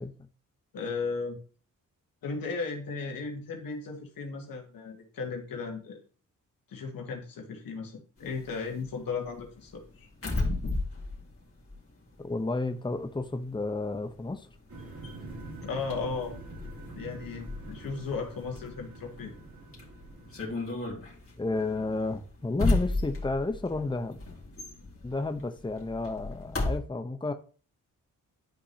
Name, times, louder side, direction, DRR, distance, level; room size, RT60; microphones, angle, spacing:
voice 1, 0.7-1.4 2.2-6.0 6.7-10.1 10.5-10.6 15.6-16.3 16.9-19.3, left 4 dB, 80° left, 2.2 m, -36 dB
sound 1, 8.2-12.6 12.9-26.8, left 2 dB, 40° left, 3.0 m, -35 dB
voice 2, 12.2-14.5 21.4-24.2 25.0-27.3, left 2 dB, 15° left, 0.9 m, -31 dB
sound 2, 14.7-20.7, right 2 dB, 55° right, 3.0 m, -45 dB
11.5 x 5.3 x 2.9 m
cardioid pair, 55°, 34 cm